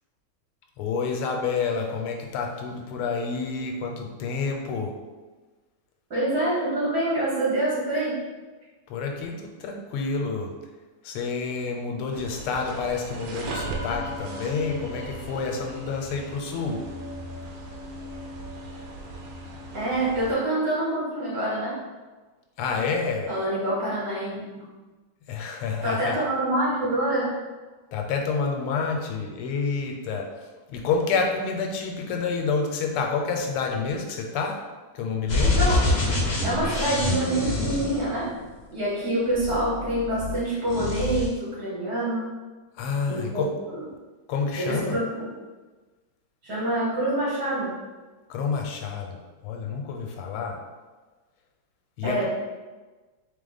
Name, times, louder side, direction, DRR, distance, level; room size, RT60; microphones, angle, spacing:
voice 1, 0.8-5.0 8.9-10.5 11.0-16.9 22.6-23.3 25.3-26.2 27.9-34.6 34.9-35.7 42.7-43.5 44.3-45.0 48.3-50.6 52.0-52.3, left 5 dB, 85° left, 2 dB, 1.5 m, -29 dB
voice 2, 6.1-8.2 19.7-21.8 23.3-24.6 25.8-27.4 35.4-35.9 36.4-38.3 38.7-42.3 43.1-43.4 44.6-45.3 46.4-47.7 52.0-52.3, right 1 dB, 45° right, -8 dB, 1.7 m, -26 dB
sound 1, 12.1-20.3, right 1 dB, 70° right, 1.2 m, -37 dB
sound 2, 35.3-38.6 39.3-40.4 40.7-41.3, left 2 dB, 45° left, 1.3 m, -25 dB
3.5 x 3.5 x 3.9 m, 1.3 s
omnidirectional pair, 2.4 m